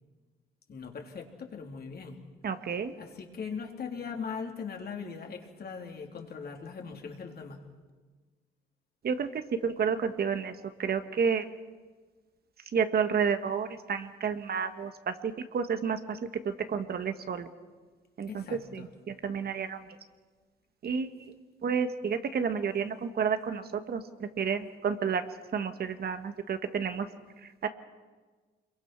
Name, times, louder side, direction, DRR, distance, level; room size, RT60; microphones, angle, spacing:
voice 1, 0.7-2.2 3.0-7.6 18.3-18.9, left 5 dB, 50° left, 2 dB, 3.4 m, -40 dB
voice 2, 2.4-2.9 9.0-10.5 10.8-11.5 12.7-16.2 16.4-17.5 18.2-19.8 20.8-21.3 21.6-23.6 23.9-25.2 25.5-27.1 27.6-27.7, right 6 dB, 50° right, 9 dB, 1.4 m, -30 dB
26.5 x 22.5 x 6.0 m, 1.4 s
cardioid pair, 90°, 20 cm